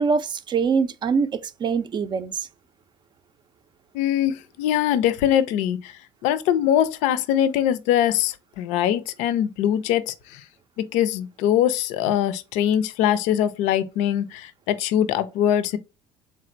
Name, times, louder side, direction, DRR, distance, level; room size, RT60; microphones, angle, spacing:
voice 1, 0.0-2.5, right 5 dB, 35° right, 0.5 m, -24 dB
voice 2, 3.9-10.4 10.8-15.8, left 10 dB, 60° left, 0.5 m, -22 dB
3.6 x 3.2 x 2.5 m
hypercardioid pair, 65°, 14 cm